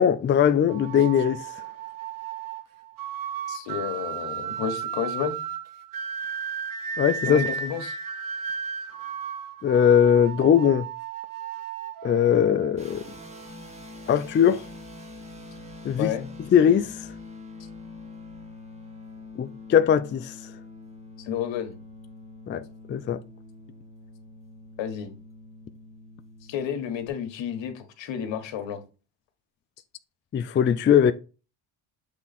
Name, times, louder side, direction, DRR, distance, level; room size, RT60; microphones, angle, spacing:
voice 1, 0.0-1.5 7.0-7.4 9.6-10.9 12.0-13.0 14.1-14.6 15.8-16.1 16.5-17.0 19.4-20.3 22.5-22.6 22.9-23.2 30.3-31.1, left 8 dB, 25° left, 0.4 m, -20 dB
sound 1, 0.7-13.5, right 7 dB, 45° right, 0.9 m, -34 dB
voice 2, 3.5-5.4 7.3-8.0 16.0-16.3 21.2-21.8 24.8-25.1 26.5-28.8, left 9 dB, 70° left, 1.4 m, -31 dB
sound 2, 12.8-27.1, left 3 dB, 15° right, 1.6 m, -44 dB
7.4 x 3.6 x 4.2 m
cardioid pair, 100°, 46 cm